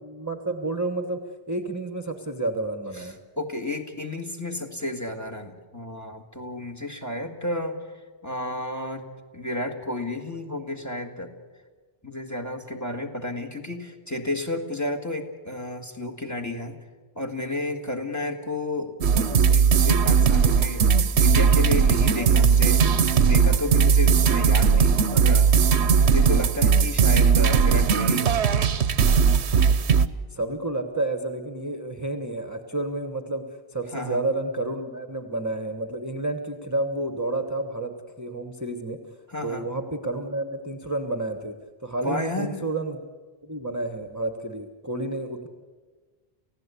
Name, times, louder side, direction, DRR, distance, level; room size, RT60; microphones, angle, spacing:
voice 1, 0.0-3.2 30.3-33.4 33.7-39.0 39.4-43.0 43.4-45.5, right 2 dB, 15° right, 6 dB, 1.2 m, -30 dB
voice 2, 3.4-7.8 8.2-9.0 9.3-11.3 12.0-16.8 17.2-20.8 21.2-25.5 26.0-28.5 33.9-34.2 39.3-39.6 42.0-42.6, left 1 dB, 15° left, 5 dB, 2.1 m, -32 dB
sound 1, 19.0-30.1, right 6 dB, 90° right, 1.1 m, -19 dB
29.0 x 16.0 x 8.3 m, 1.4 s
omnidirectional pair, 1.1 m